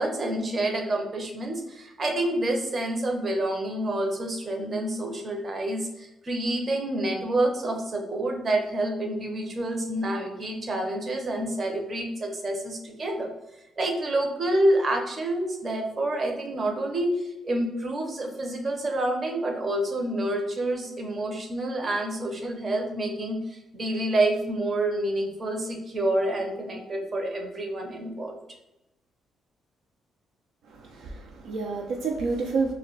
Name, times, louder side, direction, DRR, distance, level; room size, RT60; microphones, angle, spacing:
voice 1, 0.0-13.3 13.8-28.3, right 1 dB, 40° right, 2 dB, 0.6 m, -28 dB
voice 2, 30.7-32.7, right 4 dB, 80° right, 1 dB, 0.3 m, -29 dB
2.2 x 2.1 x 3.8 m, 0.91 s
cardioid pair, 90°, 0 cm